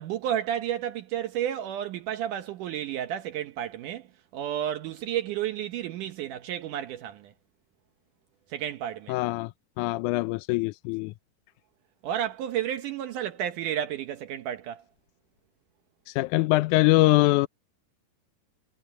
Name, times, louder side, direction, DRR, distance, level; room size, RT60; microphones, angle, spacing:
voice 1, 0.0-4.1 4.3-7.3 8.5-9.2 12.0-14.8, right 10 dB, 75° right, 2.4 m, -31 dB
voice 2, 9.1-9.5 9.8-11.1 16.2-17.5, left 19 dB, 80° left, 1.8 m, -23 dB
omnidirectional pair, 3.9 m